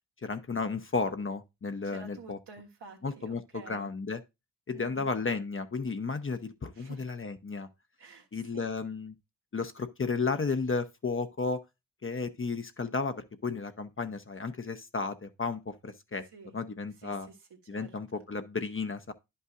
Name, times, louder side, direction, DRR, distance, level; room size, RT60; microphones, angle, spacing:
voice 1, 0.2-2.4 3.0-4.2 4.7-7.7 8.3-9.1 9.5-11.6 12.0-16.2 16.5-17.3 17.7-19.1, left 4 dB, 30° left, 0.8 m, -33 dB
voice 2, 1.8-3.9 4.7-5.1 6.7-7.0 8.0-8.7 16.3-16.5 17.0-18.2, right 4 dB, 70° right, 1.7 m, -50 dB
10.5 x 5.6 x 2.5 m
supercardioid pair, 45°, 43 cm